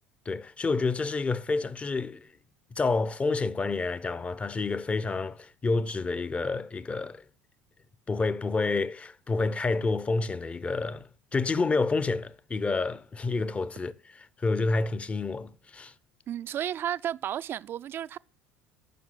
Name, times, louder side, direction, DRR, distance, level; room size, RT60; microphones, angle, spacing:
voice 1, 0.3-2.3 2.8-7.2 8.1-15.9, left 3 dB, 25° left, 0.7 m, -29 dB
voice 2, 16.3-18.2, right 10 dB, 45° right, 0.4 m, -32 dB
9.3 x 5.8 x 7.3 m
hypercardioid pair, 65°, 5 cm